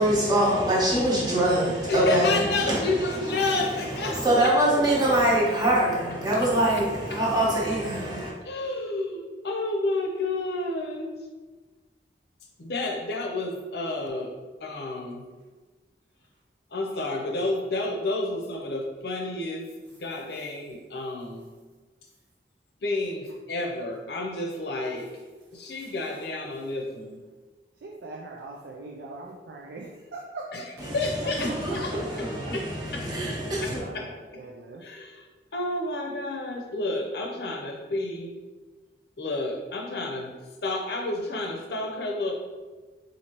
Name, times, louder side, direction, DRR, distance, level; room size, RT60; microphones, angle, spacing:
voice 1, 0.0-8.3 30.8-33.8, right 1 dB, 20° right, -5 dB, 0.9 m, -24 dB
voice 2, 1.9-4.5 7.1-7.2 8.4-11.1 12.6-14.3 14.6-15.2 16.7-21.5 22.8-25.1 25.5-27.2 30.5-32.3 32.5-34.1 34.8-35.2 35.5-38.3 39.2-40.3 40.6-42.3, left 2 dB, 65° left, 1 dB, 0.6 m, -30 dB
voice 3, 27.8-30.7 32.4-32.5 33.1-34.8, right 2 dB, 80° right, -2 dB, 0.4 m, -42 dB
4.3 x 2.7 x 2.9 m, 1.3 s
head